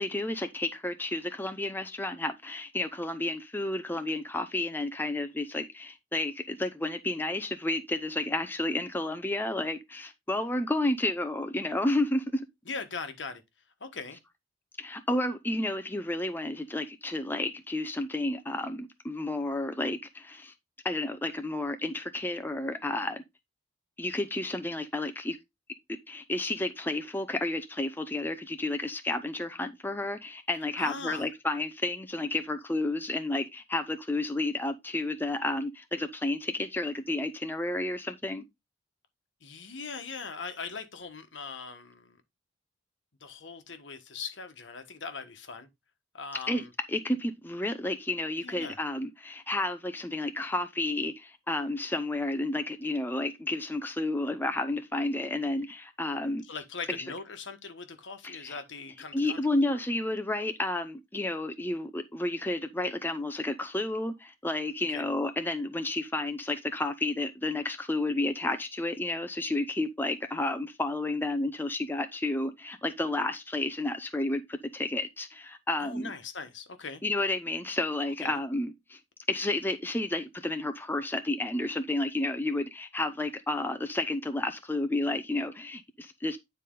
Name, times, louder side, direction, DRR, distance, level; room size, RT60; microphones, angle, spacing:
voice 1, 0.0-12.4 14.8-20.5 20.8-23.2 24.0-25.4 25.9-38.4 46.5-56.4 56.9-57.1 58.2-58.6 59.1-76.1 77.0-79.0 79.3-86.4, left 2 dB, 10° left, 0.6 m, -31 dB
voice 2, 12.7-13.4 13.8-14.2 30.8-31.2 39.4-42.2 43.2-45.7 46.1-46.7 48.4-48.8 56.5-59.4 59.7-59.8 64.9-65.0 75.8-77.0 78.2-78.4, left 5 dB, 70° left, 1.3 m, -40 dB
9.4 x 4.1 x 3.8 m
head